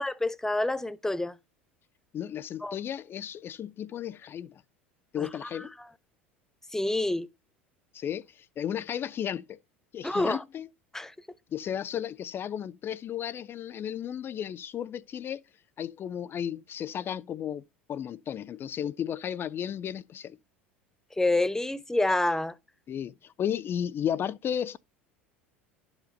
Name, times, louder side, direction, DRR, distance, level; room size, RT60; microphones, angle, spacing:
voice 1, 0.0-1.4 2.6-2.8 5.2-5.7 6.7-7.3 10.0-10.4 10.9-11.1 21.2-22.5, left 2 dB, 5° left, 0.7 m, -28 dB
voice 2, 2.1-4.6 5.1-5.7 7.9-9.6 9.9-10.7 11.5-15.4 15.8-17.6 17.9-20.4 22.9-24.8, left 9 dB, 35° left, 0.4 m, -34 dB
11.5 x 5.0 x 5.2 m
hypercardioid pair, 75°, 6 cm